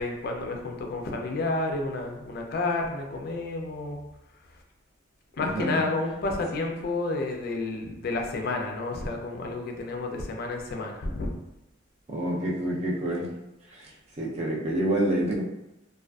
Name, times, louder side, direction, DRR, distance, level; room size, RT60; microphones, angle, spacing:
voice 1, 0.0-4.0 5.3-11.3, left 2 dB, 50° left, 2 dB, 0.4 m, -30 dB
voice 2, 5.4-5.8 12.1-13.3 13.7-13.9 14.2-15.4, right 1 dB, 35° right, -3 dB, 0.5 m, -27 dB
2.4 x 2.3 x 2.2 m, 0.90 s
head